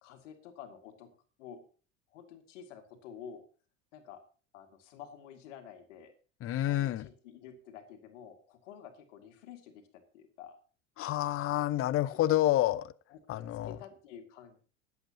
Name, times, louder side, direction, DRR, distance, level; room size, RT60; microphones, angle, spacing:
voice 1, 0.0-1.1 1.4-1.6 2.1-3.4 3.9-4.2 4.5-6.1 6.7-10.6 12.1-12.2 13.1-13.2 13.6-14.6, left 8 dB, 70° left, 6 dB, 2.3 m, -50 dB
voice 2, 6.4-7.1 11.0-12.9 13.3-13.8, left 14 dB, 35° left, 17 dB, 0.7 m, -28 dB
20.5 x 8.1 x 2.9 m, 0.39 s
hypercardioid pair, 75°, 38 cm